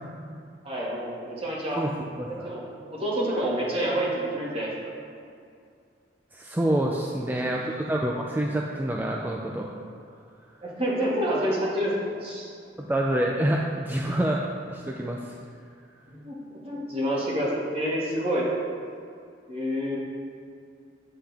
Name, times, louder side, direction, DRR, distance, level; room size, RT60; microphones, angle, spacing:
voice 1, 0.6-1.8 2.4-4.7 7.1-7.5 10.6-12.5 16.1-16.4 16.6-18.5 19.5-20.0, equal, 35° right, -5 dB, 1.9 m, -28 dB
voice 2, 2.2-2.5 6.3-9.7 12.8-14.4 14.7-15.4, right 1 dB, 10° right, -1 dB, 0.4 m, -27 dB
8.8 x 7.6 x 3.5 m, 2.4 s
head